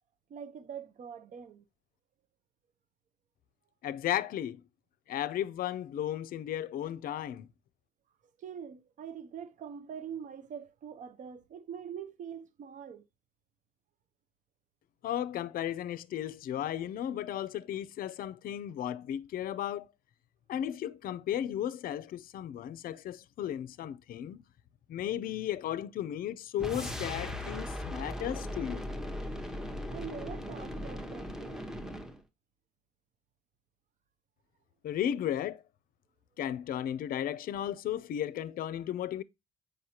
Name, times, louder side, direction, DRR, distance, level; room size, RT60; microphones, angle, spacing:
voice 1, 0.3-1.6 8.4-13.1 29.9-31.7, right 8 dB, 45° right, 0.8 m, -44 dB
voice 2, 3.8-4.6 5.1-7.5 15.0-19.9 20.5-24.4 24.9-28.9 34.8-35.6 36.4-39.2, left 11 dB, 55° left, 0.6 m, -35 dB
sound 1, 26.6-32.2, left 1 dB, 5° right, 0.9 m, -38 dB
7.9 x 5.3 x 2.8 m
cardioid pair, 120°, 17 cm